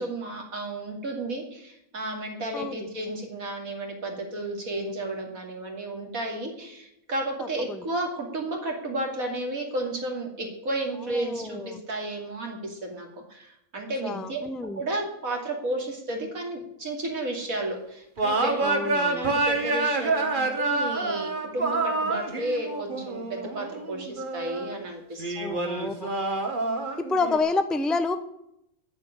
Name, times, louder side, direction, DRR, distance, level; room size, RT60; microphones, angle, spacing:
voice 1, 0.0-25.3, right 1 dB, 75° right, 1 dB, 3.1 m, -33 dB
voice 2, 2.5-2.9 7.7-7.8 11.1-11.8 14.0-14.8 18.6-19.2 25.4-26.2 27.0-28.2, left 3 dB, ahead, 9 dB, 0.6 m, -29 dB
sound 1, 18.2-24.7 25.2-27.4, right 3 dB, 35° right, 1.6 m, -27 dB
10.5 x 7.6 x 9.6 m, 0.78 s
omnidirectional pair, 1.5 m